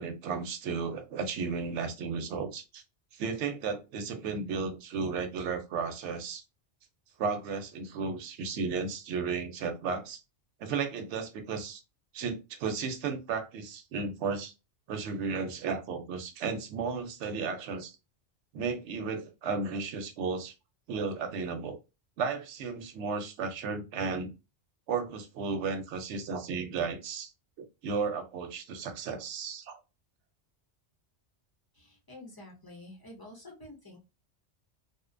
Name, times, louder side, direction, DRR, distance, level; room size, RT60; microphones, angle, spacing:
voice 1, 0.0-2.8 3.1-6.4 7.2-10.2 10.6-11.8 12.1-14.5 14.9-18.0 18.5-20.5 20.9-21.8 22.2-24.3 24.9-27.3 27.8-29.8, right 5 dB, 75° right, 7 dB, 0.9 m, -34 dB
voice 2, 31.7-34.0, left 1 dB, 35° left, -1 dB, 0.3 m, -49 dB
2.6 x 2.1 x 2.5 m, 0.27 s
omnidirectional pair, 1.2 m